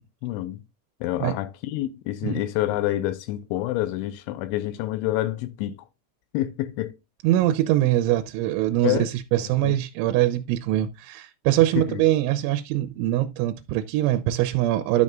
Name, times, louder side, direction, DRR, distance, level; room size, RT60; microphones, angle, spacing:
voice 1, 0.2-0.6 1.0-5.9 6.3-7.0 8.8-9.1 9.4-9.8 11.8-12.0, left 15 dB, 85° left, 3.0 m, -28 dB
voice 2, 7.2-15.0, right 14 dB, 85° right, 3.0 m, -23 dB
12.0 x 6.4 x 2.4 m
omnidirectional pair, 5.5 m